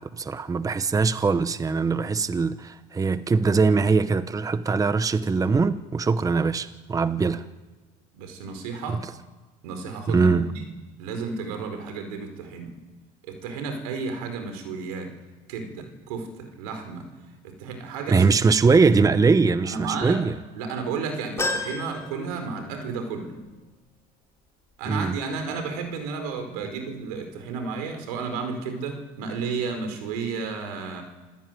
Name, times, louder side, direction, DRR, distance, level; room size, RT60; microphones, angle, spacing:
voice 1, 0.0-7.4 8.9-9.0 10.1-10.5 18.1-20.4 24.9-25.2, right 4 dB, 20° right, 0.9 m, -22 dB
voice 2, 8.1-9.0 9.6-10.7 11.0-12.7 13.2-15.1 15.5-17.1 17.4-18.3 19.6-20.2 20.5-23.3 24.8-31.0, right 4 dB, 90° right, 4.8 m, -32 dB
sound 1, 21.4-23.0 23.4-23.5 24.8-24.9, left 2 dB, 15° left, 5.2 m, -32 dB
27.5 x 16.5 x 9.4 m
supercardioid pair, 100°, 18 cm